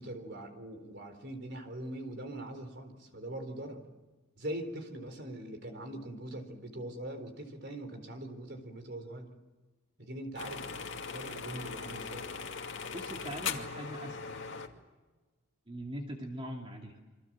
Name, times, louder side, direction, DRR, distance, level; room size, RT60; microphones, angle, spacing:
voice 1, 0.0-3.8 4.4-9.3 10.0-12.3, right 1 dB, 50° right, 6 dB, 4.1 m, -42 dB
sound 1, 10.4-14.7, left 5 dB, 60° left, 2.4 m, -39 dB
voice 2, 12.9-14.4 15.7-17.0, equal, 25° right, 1 dB, 2.5 m, -41 dB
28.5 x 24.5 x 7.6 m, 1.2 s
head